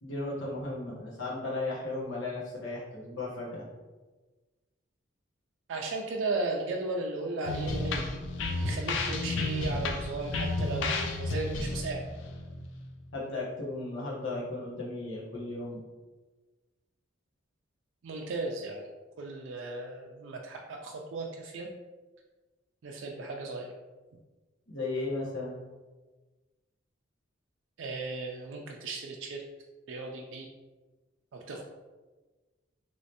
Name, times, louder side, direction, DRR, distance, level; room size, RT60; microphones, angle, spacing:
voice 1, 0.0-3.6 13.1-15.8 24.7-25.6, left 2 dB, 90° left, -5 dB, 1.1 m, -35 dB
voice 2, 5.7-8.1 8.5-12.0 18.0-18.9 19.2-21.7 22.8-23.7 27.8-29.4 29.9-30.5 31.3-31.6, right 3 dB, 70° right, 0 dB, 0.4 m, -36 dB
sound 1, 7.4-13.1, left 2 dB, 70° left, 0.4 m, -32 dB
3.2 x 3.0 x 2.8 m, 1.3 s
head